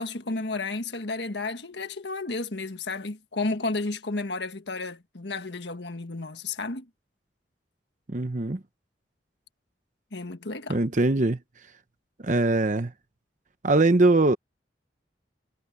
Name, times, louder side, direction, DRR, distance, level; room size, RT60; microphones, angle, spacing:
voice 1, 0.0-6.9 10.1-10.8, left 3 dB, 70° left, 1.6 m, -32 dB
voice 2, 8.1-8.6 10.7-11.4 12.2-12.9 13.6-14.4, right 2 dB, 45° right, 0.9 m, -21 dB
head